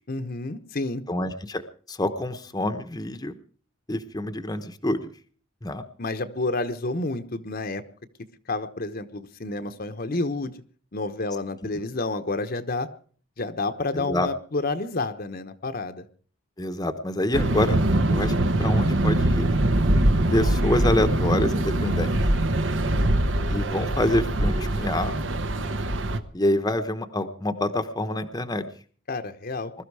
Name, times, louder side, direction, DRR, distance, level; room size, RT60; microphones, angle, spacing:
voice 1, 0.1-1.0 6.0-7.8 8.5-10.5 10.9-12.9 13.4-16.0 29.1-29.7, left 2 dB, 45° left, 8 dB, 1.0 m, -29 dB
voice 2, 1.1-3.3 3.9-5.0 5.6-5.8 13.9-14.3 16.6-17.8 18.1-18.3 18.6-19.5 20.3-22.4 23.5-25.1 26.3-28.6, left 1 dB, 20° left, 8 dB, 1.0 m, -26 dB
sound 1, 17.3-26.2, right 1 dB, 65° right, 1.2 m, -23 dB
21.0 x 13.0 x 4.8 m, 0.44 s
head